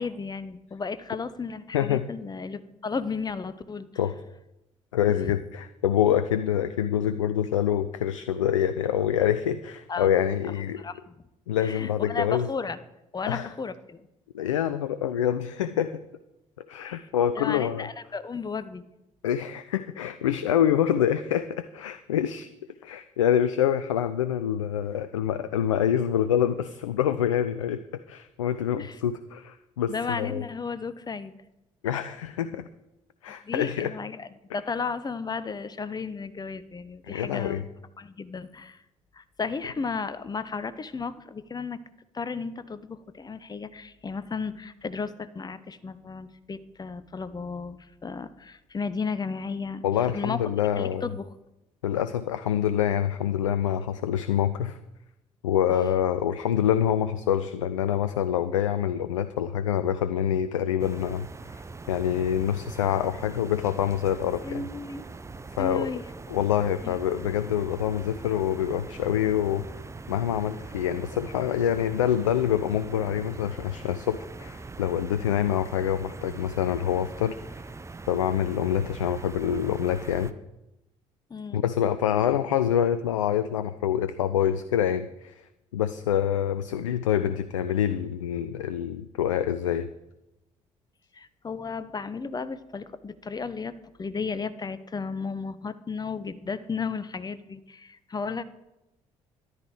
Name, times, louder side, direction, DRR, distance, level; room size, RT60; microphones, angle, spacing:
voice 1, 0.0-3.9 9.9-10.1 10.8-11.1 11.6-12.8 13.1-14.0 16.8-16.9 17.3-18.8 28.8-29.0 29.9-31.3 33.4-34.3 34.5-37.6 38.0-38.8 39.1-41.8 42.1-49.8 50.1-50.4 50.8-51.3 64.4-65.0 65.6-66.0 66.8-67.0 81.3-81.6 91.1-98.4, left 5 dB, 25° left, 14 dB, 0.9 m, -34 dB
voice 2, 1.7-2.1 4.0-4.2 4.9-10.8 11.5-12.5 13.3-13.5 14.3-16.0 16.7-17.9 19.2-22.5 22.8-27.8 28.1-30.4 31.8-32.7 33.2-33.9 37.1-37.6 49.8-51.0 51.8-54.8 55.4-61.6 61.9-64.7 65.6-65.9 66.3-69.6 70.1-77.6 78.1-80.3 81.5-85.5 85.7-89.9, left 10 dB, 80° left, 13 dB, 0.4 m, -26 dB
sound 1, 60.8-80.3, right 3 dB, 20° right, 0.8 m, -42 dB
13.0 x 11.0 x 4.9 m, 0.93 s
figure-of-eight pair, 45°, 16 cm